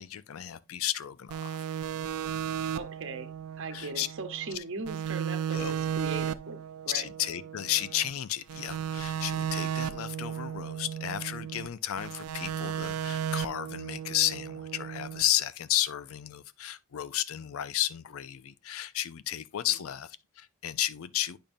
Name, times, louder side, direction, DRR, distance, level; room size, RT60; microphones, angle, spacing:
voice 1, 0.0-1.6 3.7-4.1 4.5-4.6 5.5-5.7 6.9-21.4, left 12 dB, 70° left, 0.4 m, -33 dB
sound 1, 1.3-4.6 4.9-8.1 8.5-11.7 12.0-15.2, right 9 dB, 80° right, 0.4 m, -35 dB
voice 2, 2.7-3.3 3.6-6.6 6.8-7.0 19.7-19.9, right 4 dB, 60° right, 0.8 m, -39 dB
8.7 x 5.2 x 2.5 m
head